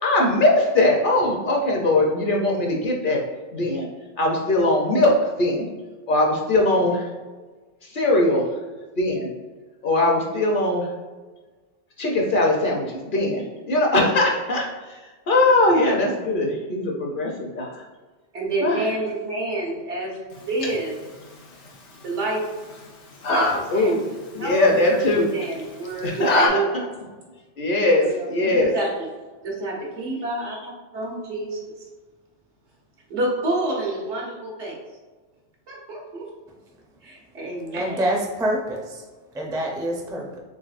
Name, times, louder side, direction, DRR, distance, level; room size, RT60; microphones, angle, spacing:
voice 1, 0.0-3.2 3.5-3.9 4.2-5.1 5.4-5.6 6.1-7.1 7.9-8.4 9.0-9.3 9.8-10.9 12.0-15.0 15.3-17.8 18.6-18.9 23.7-24.0 24.3-25.3 26.0-26.8 27.6-28.7, left 2 dB, 55° left, -1 dB, 0.7 m, -21 dB
voice 2, 18.3-20.9 22.0-22.4 23.3-25.0 25.3-26.7 28.0-29.1 29.4-31.7 33.1-34.8 35.7-36.3 37.0-38.0, right 2 dB, 85° right, -3 dB, 1.4 m, -29 dB
sound 1, 20.3-26.5, left 1 dB, 90° left, 1.0 m, -28 dB
voice 3, 37.7-39.0 39.3-40.4, right 1 dB, 5° right, -1 dB, 0.3 m, -26 dB
3.9 x 3.5 x 2.4 m, 1.3 s
omnidirectional pair, 1.2 m